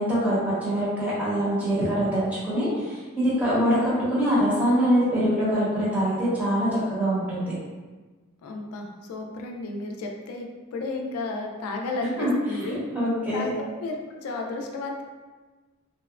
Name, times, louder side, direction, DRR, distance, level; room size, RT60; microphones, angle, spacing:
voice 1, 0.0-7.5 12.2-12.3 12.9-13.5, equal, 5° right, -11 dB, 0.9 m, -24 dB
voice 2, 8.4-12.8 13.3-13.5 13.8-15.0, left 2 dB, 90° left, 2 dB, 0.3 m, -33 dB
2.7 x 2.1 x 2.3 m, 1.3 s
head